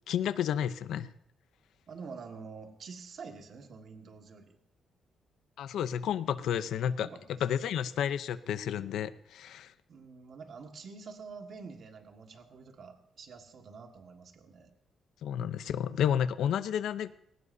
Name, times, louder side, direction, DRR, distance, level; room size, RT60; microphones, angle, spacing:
voice 1, 0.1-1.1 5.6-7.1 7.4-9.7 15.2-17.1, left 9 dB, 90° left, 13 dB, 0.7 m, -31 dB
voice 2, 1.9-4.6 7.0-7.8 9.9-14.7, right 5 dB, 55° right, 4 dB, 1.8 m, -47 dB
20.0 x 18.0 x 2.7 m, 0.79 s
cardioid pair, 145°, 0 cm